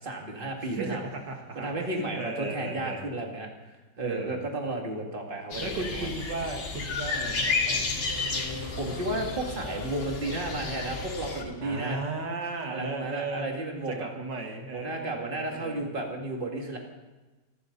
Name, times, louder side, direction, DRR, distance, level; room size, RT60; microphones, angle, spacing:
voice 1, 0.0-1.1 1.6-6.1 8.2-8.4 8.7-12.0 12.7-14.1 14.7-16.8, right 2 dB, 30° right, 1 dB, 2.5 m, -33 dB
voice 2, 0.6-3.0 4.0-4.4 5.6-7.9 11.6-13.5 13.9-15.8, right 3 dB, 80° right, 3 dB, 2.5 m, -36 dB
sound 1, 5.5-11.4, left 4 dB, 80° left, 2.7 m, -32 dB
sound 2, 7.1-12.5, left 3 dB, 45° left, 2.0 m, -44 dB
26.0 x 12.5 x 4.1 m, 1.2 s
omnidirectional pair, 1.9 m